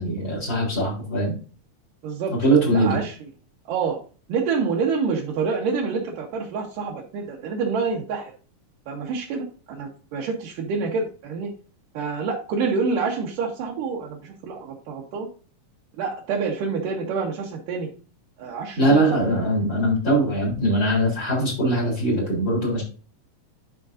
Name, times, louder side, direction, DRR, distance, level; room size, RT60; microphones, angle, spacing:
voice 1, 0.0-1.3 2.4-3.0 18.8-22.8, right 1 dB, 25° left, -1 dB, 4.0 m, -21 dB
voice 2, 2.0-2.4 2.7-3.3 3.7-4.0 4.3-8.3 8.9-11.5 11.9-15.3 16.0-17.9 18.4-19.2, right 5 dB, 85° right, -2 dB, 2.8 m, -27 dB
11.5 x 5.2 x 2.6 m, 0.38 s
omnidirectional pair, 3.7 m